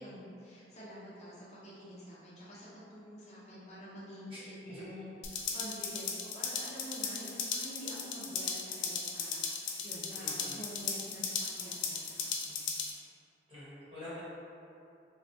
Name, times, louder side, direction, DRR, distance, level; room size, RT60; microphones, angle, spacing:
voice 1, 0.0-12.7, equal, 40° left, -10 dB, 0.8 m, -48 dB
voice 2, 4.3-4.9 10.1-10.7 13.5-14.2, left 1 dB, 30° right, -11 dB, 1.0 m, -47 dB
sound 1, 5.2-12.9, left 5 dB, 90° left, 0.4 m, -37 dB
3.9 x 2.1 x 2.7 m, 2.7 s
head